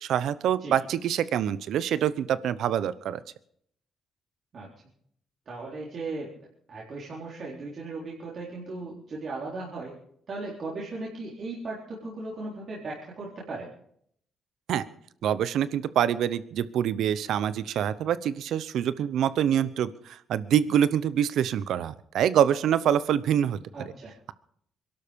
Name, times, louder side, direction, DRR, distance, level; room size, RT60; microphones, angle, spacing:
voice 1, 0.0-3.2 14.7-14.8 15.2-23.6, right 9 dB, 75° right, 16 dB, 0.8 m, -25 dB
voice 2, 5.5-6.3 6.7-9.9 10.3-13.7 23.7-24.1, right 3 dB, 50° right, -5 dB, 4.0 m, -37 dB
22.5 x 12.0 x 5.3 m, 0.68 s
cardioid pair, 90°, 0 cm